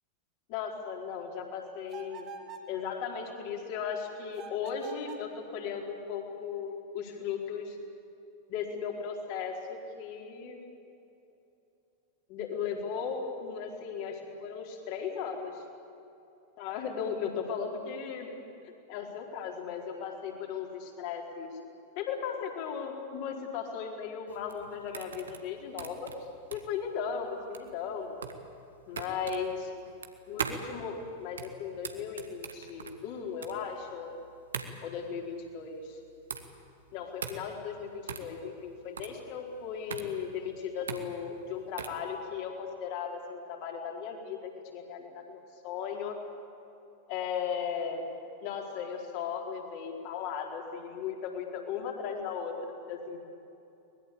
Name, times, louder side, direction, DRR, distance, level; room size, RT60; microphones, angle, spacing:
voice 1, 0.5-2.3 2.7-7.8 8.5-10.6 12.3-15.6 16.6-21.5 22.0-26.1 26.5-28.2 28.9-29.7 30.3-34.1 34.8-36.0 36.9-46.2 47.1-48.1 48.4-53.2, left 6 dB, 45° left, 1 dB, 4.4 m, -37 dB
sound 1, 1.9-2.7 4.3-5.3, right 6 dB, 35° right, 2.5 m, -45 dB
sound 2, 24.3-42.1, right 6 dB, 70° right, 1.8 m, -41 dB
23.5 x 20.5 x 8.6 m, 2.8 s
figure-of-eight pair, 90°, 0 cm